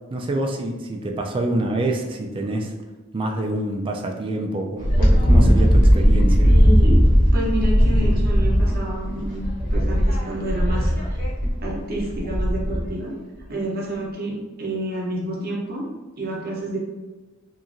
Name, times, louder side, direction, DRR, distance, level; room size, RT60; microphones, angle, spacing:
voice 1, 0.1-2.7 3.1-6.4, right 1 dB, 25° right, 2 dB, 0.3 m, -26 dB
Wind, 4.8-12.9, equal, 40° left, 0.7 m, -17 dB
voice 2, 6.4-7.0 7.3-9.4 9.7-11.2 11.6-13.1 13.5-15.9 16.2-16.8, right 1 dB, 50° right, -3 dB, 0.7 m, -29 dB
2.8 x 2.4 x 2.5 m, 1.2 s
head